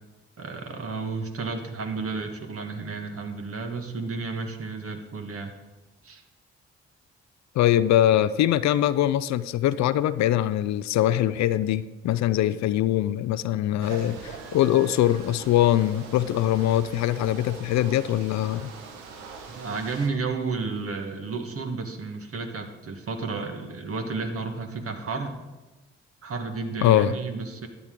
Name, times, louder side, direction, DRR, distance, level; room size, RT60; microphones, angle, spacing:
voice 1, 0.4-5.5 6.0-6.2 13.8-14.2 19.5-25.4 26.2-27.7, right 4 dB, 50° right, 5 dB, 1.5 m, -32 dB
voice 2, 7.6-18.7 26.8-27.1, left 12 dB, 65° left, 15 dB, 0.5 m, -22 dB
sound 1, 13.8-20.1, right 5 dB, 90° right, 0.9 m, -42 dB
12.0 x 8.7 x 3.7 m, 1.1 s
hypercardioid pair, 40°, 30 cm